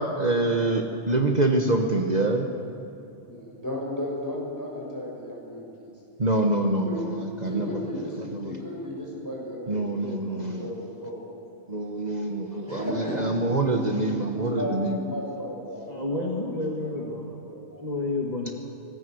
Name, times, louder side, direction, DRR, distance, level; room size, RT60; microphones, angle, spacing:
voice 1, 0.2-2.5 6.2-6.8 7.4-7.7 8.3-8.5 9.7-10.7 11.7-12.8 13.2-15.0, right 2 dB, 40° right, 3 dB, 1.3 m, -25 dB
voice 2, 3.2-5.9 6.8-7.0 7.4-11.2 12.7-16.4 16.8-16.9 17.5-17.9, left 1 dB, 15° left, -3 dB, 6.6 m, -34 dB
voice 3, 15.9-17.3 17.7-18.5, left 2 dB, 40° left, -1 dB, 2.1 m, -30 dB
25.5 x 19.5 x 7.9 m, 2.8 s
omnidirectional pair, 1.1 m